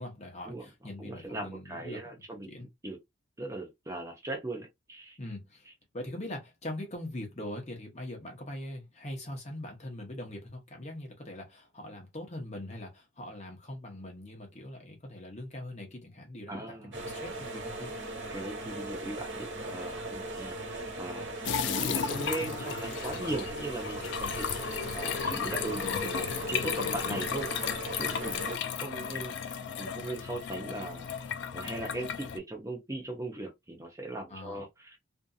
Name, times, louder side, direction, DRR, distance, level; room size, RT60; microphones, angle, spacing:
voice 1, 0.0-2.7 5.2-5.7 5.9-17.9 24.2-24.3 34.3-34.6, left 1 dB, 35° left, 0.8 m, -42 dB
voice 2, 1.0-3.0 3.4-5.2 16.5-17.2 18.3-21.3 21.6-24.5 24.9-27.5 27.9-31.3 31.5-35.0, right 2 dB, 15° right, 0.6 m, -39 dB
sound 1, 16.9-28.6, right 2 dB, 60° right, 1.2 m, -39 dB
sound 2, 21.4-32.4, left 7 dB, 60° left, 0.3 m, -34 dB
2.6 x 2.5 x 2.3 m
head